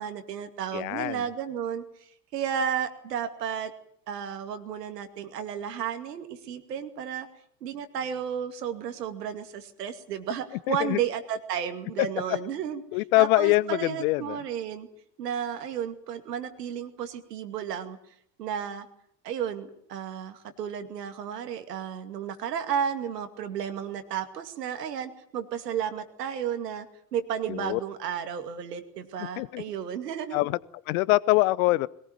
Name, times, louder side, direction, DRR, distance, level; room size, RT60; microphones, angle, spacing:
voice 1, 0.0-1.8 2.3-3.7 4.1-7.3 7.6-14.9 15.2-18.0 18.4-18.9 19.2-26.9 27.1-30.4, right 8 dB, 70° right, 2.5 m, -33 dB
voice 2, 0.7-1.2 10.7-11.0 12.0-12.1 12.9-14.4 27.5-27.8 29.4-29.6 30.3-30.6 30.9-31.9, left 20 dB, 60° left, 0.9 m, -24 dB
22.0 x 18.5 x 9.3 m
figure-of-eight pair, 70°, 49 cm